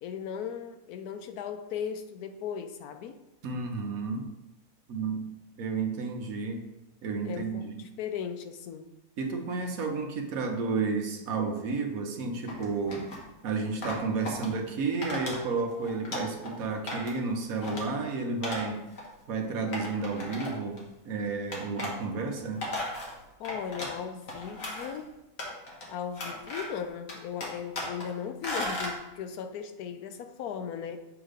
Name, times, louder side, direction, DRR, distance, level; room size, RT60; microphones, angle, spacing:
voice 1, 0.0-3.2 7.2-8.9 23.4-25.2 25.9-31.0, left 8 dB, 90° left, 8 dB, 1.1 m, -37 dB
voice 2, 3.4-4.3 4.9-5.3 5.6-6.6 7.0-7.8 9.2-13.0 13.4-18.8 19.3-22.7, right 4 dB, 70° right, 3 dB, 1.3 m, -31 dB
sound 1, 12.5-13.2 13.8-14.5 15.0-15.4 15.7-16.5 16.9-17.2 17.5-17.8 18.4-18.7 19.0-19.1 19.7-20.8 21.5-21.9 22.4-24.0 24.3-25.0 25.4-25.9 26.1-26.8 27.1-28.1 28.4-29.0, left 1 dB, 65° left, 1.7 m, -36 dB
7.2 x 3.0 x 5.0 m, 0.93 s
omnidirectional pair, 1.5 m